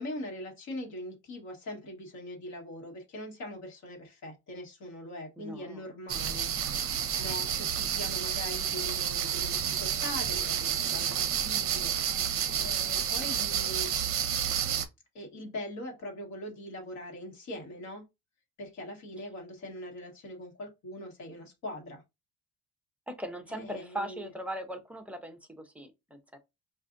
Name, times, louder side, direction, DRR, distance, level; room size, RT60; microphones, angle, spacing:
voice 1, 0.0-6.5 7.2-13.9 15.1-18.1 18.6-22.0 23.5-24.3, left 1 dB, 60° left, 1.4 m, -41 dB
voice 2, 5.4-5.8 23.1-26.4, right 1 dB, 5° right, 0.6 m, -39 dB
sound 1, 6.1-14.9, right 9 dB, 45° right, 0.6 m, -30 dB
4.7 x 2.5 x 2.5 m
cardioid pair, 140°, 32 cm